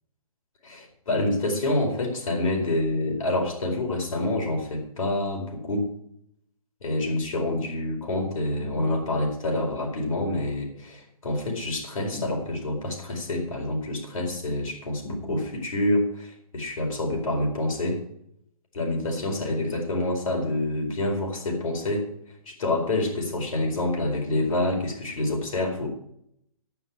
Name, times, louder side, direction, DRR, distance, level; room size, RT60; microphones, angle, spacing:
voice 1, 0.6-5.9 6.8-18.0 18.7-22.1 22.4-25.9, left 2 dB, 65° left, 1 dB, 4.5 m, -27 dB
11.5 x 9.3 x 6.1 m, 0.72 s
hypercardioid pair, 160°, 19 cm